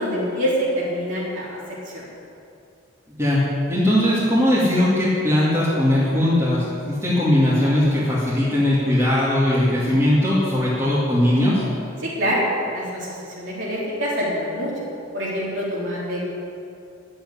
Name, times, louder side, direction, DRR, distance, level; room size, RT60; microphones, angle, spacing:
voice 1, 0.0-1.6 1.9-2.0 12.0-12.4 12.7-14.7 15.1-16.2, equal, 65° right, -7 dB, 3.6 m, -25 dB
voice 2, 3.7-11.6, left 1 dB, 15° right, -9 dB, 2.4 m, -19 dB
11.5 x 8.0 x 9.8 m, 2.6 s
head